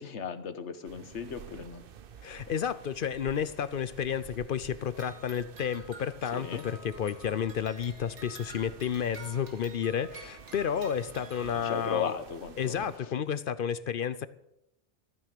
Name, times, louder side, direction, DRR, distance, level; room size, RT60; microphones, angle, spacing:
voice 1, 0.0-1.8 6.3-6.6 11.6-12.9, left 6 dB, 85° left, 11 dB, 1.4 m, -36 dB
sound 1, 0.8-13.0, right 8 dB, 55° right, 0.9 m, -51 dB
voice 2, 2.2-12.1 12.6-14.3, left 8 dB, 60° left, 15 dB, 0.7 m, -31 dB
sound 2, 4.9-11.6, right 3 dB, 80° right, 2.5 m, -50 dB
13.5 x 9.4 x 6.6 m, 0.86 s
omnidirectional pair, 1.2 m